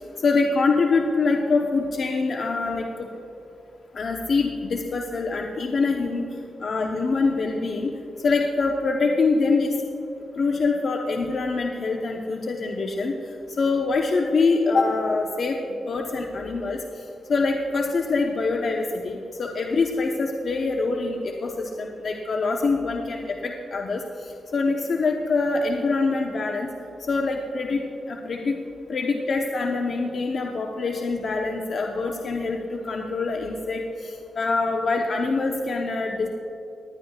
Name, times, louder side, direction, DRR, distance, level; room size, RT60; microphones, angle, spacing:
voice 1, 0.2-3.1 3.9-6.3 6.6-7.9 8.2-9.7 10.4-13.1 13.6-15.6 15.9-16.8 17.3-24.0 24.5-26.7 27.1-27.8 28.1-28.6 28.9-36.3, left 3 dB, 60° left, 1 dB, 0.9 m, -24 dB
19.5 x 11.5 x 2.4 m, 2.8 s
cardioid pair, 55°, 0 cm